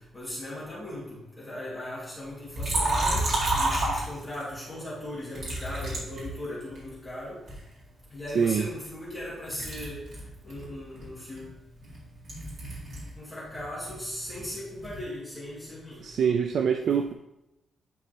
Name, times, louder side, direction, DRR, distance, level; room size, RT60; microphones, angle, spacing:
voice 1, 0.1-1.0 1.4-3.3 3.6-7.4 8.1-10.0 10.4-11.5 13.2-16.0, left 1 dB, 5° left, -9 dB, 2.3 m, -38 dB
Liquid, 2.6-4.5 5.3-6.9 7.5-9.2 9.5-13.2 13.5-15.1, right 1 dB, 70° right, 2.7 m, -31 dB
voice 2, 16.0-17.1, right 7 dB, 55° right, 5 dB, 0.3 m, -24 dB
10.5 x 4.0 x 3.0 m, 0.91 s
wide cardioid pair, 175°, 0 cm